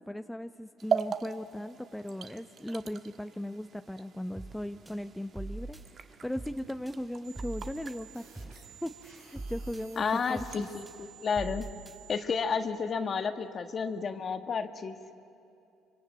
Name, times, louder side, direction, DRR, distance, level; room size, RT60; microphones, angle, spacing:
voice 1, 0.0-8.5 8.8-10.0 10.3-10.7, left 1 dB, 5° left, 8 dB, 0.8 m, -38 dB
sound 1, 0.8-10.6, right 7 dB, 50° right, 1.3 m, -40 dB
sound 2, 4.4-4.6 4.9-5.8 6.4-6.6 6.9-8.0 8.4-8.6 8.9-9.8 10.4-10.6 10.9-12.0, right 2 dB, 15° right, 4.1 m, -42 dB
sound 3, 7.2-12.3, right 10 dB, 90° right, 5.2 m, -54 dB
voice 2, 10.0-11.7 12.1-15.0, left 5 dB, 40° left, 8 dB, 1.7 m, -31 dB
25.5 x 24.5 x 8.8 m, 2.7 s
supercardioid pair, 85°, 0 cm